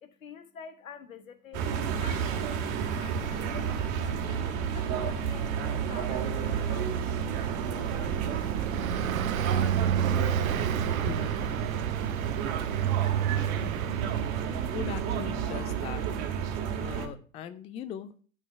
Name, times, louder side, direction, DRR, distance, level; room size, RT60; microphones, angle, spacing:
voice 1, 0.0-2.6 2.9-3.8 4.3-6.9, left 7 dB, 75° left, 11 dB, 1.5 m, -47 dB
sound 1, 1.5-17.1, right 7 dB, 40° right, 2.0 m, -31 dB
Car passing by, 4.7-15.7, right 10 dB, 80° right, 0.6 m, -32 dB
voice 2, 14.7-16.0 16.8-18.1, left 9 dB, 15° left, 13 dB, 0.4 m, -39 dB
11.5 x 5.7 x 5.8 m, 0.41 s
figure-of-eight pair, 100°, 41 cm